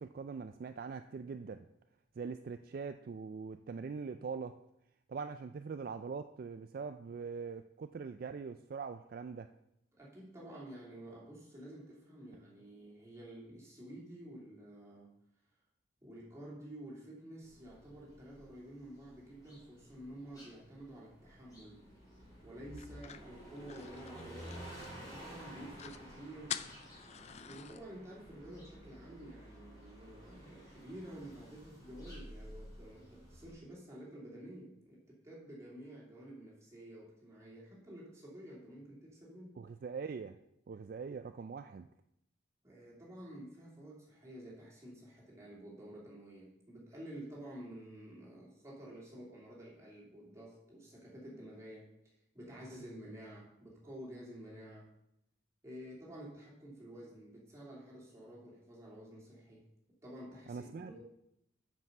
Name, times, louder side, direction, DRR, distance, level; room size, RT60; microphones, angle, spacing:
voice 1, 0.0-1.7 2.2-4.6 5.1-9.5 39.6-40.4 40.7-41.9 60.5-60.9, right 5 dB, 50° right, 9 dB, 0.3 m, -42 dB
voice 2, 9.9-15.2 16.0-21.9 22.4-24.6 25.0-26.6 27.4-39.6 42.6-54.9 55.6-59.7 60.0-61.0, right 1 dB, 15° right, -5 dB, 2.7 m, -50 dB
sound 1, 17.4-33.5, equal, 20° left, 3.6 m, -53 dB
sound 2, 22.8-25.2 25.5-25.6 25.8-26.0 26.5-27.8, left 9 dB, 35° left, 0.4 m, -46 dB
7.6 x 5.5 x 6.7 m, 0.81 s
head